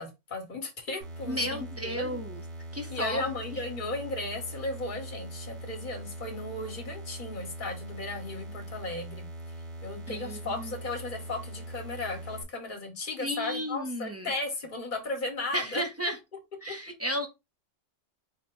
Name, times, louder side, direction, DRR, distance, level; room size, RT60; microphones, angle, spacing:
voice 1, 0.0-2.2 2.9-9.3 9.8-15.8, left 2 dB, 45° left, 1.4 m, -35 dB
sound 1, 1.0-12.4, right 1 dB, 70° right, 1.2 m, -42 dB
voice 2, 1.2-2.4 2.7-3.2 3.5-3.6 10.1-10.7 13.2-14.3 15.5-16.2 16.6-17.3, equal, 20° right, 0.5 m, -33 dB
4.5 x 2.2 x 4.4 m
omnidirectional pair, 1.2 m